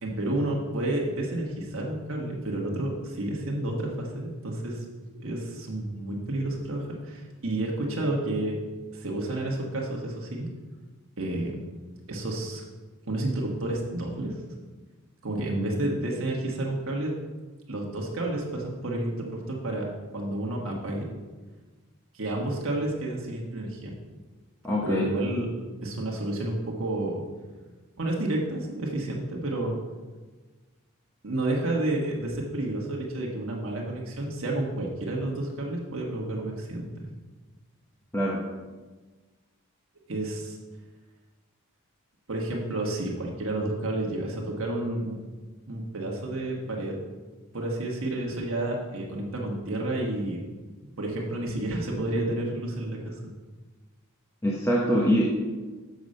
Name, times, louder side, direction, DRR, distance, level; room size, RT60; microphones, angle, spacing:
voice 1, 0.0-4.8 5.2-8.6 8.9-10.5 11.2-11.6 12.1-12.6 13.1-14.3 15.2-17.1 17.7-21.1 22.1-23.9 24.8-25.5 25.8-27.3 28.0-29.7 31.2-37.1 40.1-40.6 42.3-45.2 45.7-47.0 47.5-50.4 51.0-53.3, right 1 dB, 65° right, -2 dB, 1.3 m, -30 dB
voice 2, 24.6-25.1 38.1-38.5 54.4-55.3, equal, 15° left, -3 dB, 0.9 m, -24 dB
7.1 x 6.4 x 5.4 m, 1.3 s
head